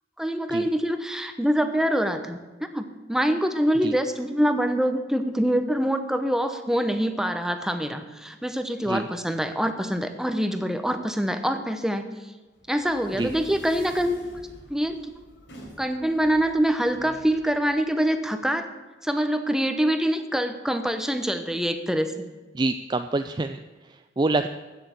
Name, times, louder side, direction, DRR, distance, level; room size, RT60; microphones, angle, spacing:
voice 1, 0.2-2.4 2.7-12.1 12.7-14.2 14.7-15.1 15.8-18.7 19.0-22.1, equal, 5° right, 8 dB, 1.0 m, -25 dB
sound 1, 12.5-18.3, equal, 85° left, 4.3 m, -48 dB
voice 2, 22.5-24.5, right 2 dB, 25° right, 8 dB, 0.4 m, -27 dB
15.5 x 6.8 x 8.3 m, 1.3 s
head